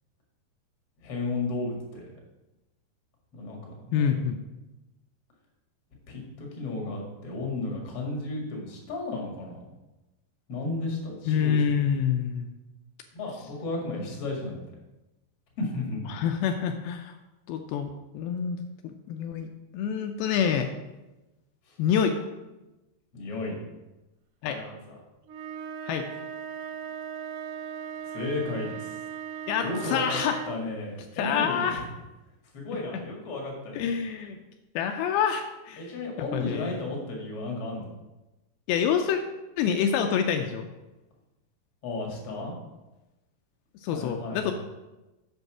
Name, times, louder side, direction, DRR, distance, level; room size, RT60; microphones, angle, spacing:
voice 1, 1.0-2.1 3.3-4.2 6.1-9.6 10.5-11.5 13.1-14.6 15.6-16.1 21.7-21.8 23.1-23.6 24.5-25.0 28.1-29.0 29.5-30.2 30.5-31.9 32.5-33.8 35.8-37.9 41.8-42.5 43.9-44.5, left 2 dB, 45° left, -1 dB, 2.1 m, -33 dB
voice 2, 3.9-4.4 11.3-12.5 16.1-17.2 17.5-20.7 21.8-22.2 24.4-24.6 25.8-26.1 29.5-30.4 31.2-31.8 33.8-34.4 34.8-35.8 36.2-36.8 38.7-39.2 39.6-40.7 43.8-44.5, left 7 dB, 90° left, 5 dB, 2.1 m, -27 dB
sound 1, 25.3-30.7, right 8 dB, 80° right, 2.7 m, -38 dB
7.0 x 5.3 x 6.0 m, 1.0 s
omnidirectional pair, 4.9 m